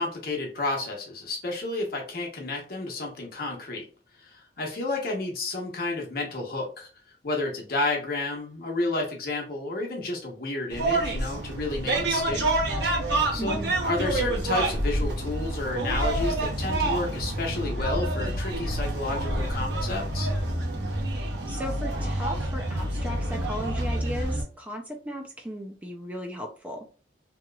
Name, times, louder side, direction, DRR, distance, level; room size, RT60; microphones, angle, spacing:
voice 1, 0.0-3.9 4.2-6.9 7.2-12.4 13.3-20.3, left 2 dB, 55° left, 0 dB, 0.9 m, -31 dB
sound 1, 10.7-24.4, right 1 dB, 70° right, 0.9 m, -28 dB
voice 2, 13.4-13.8 21.5-26.9, equal, 10° right, 2 dB, 0.4 m, -36 dB
2.9 x 2.8 x 2.3 m, 0.38 s
head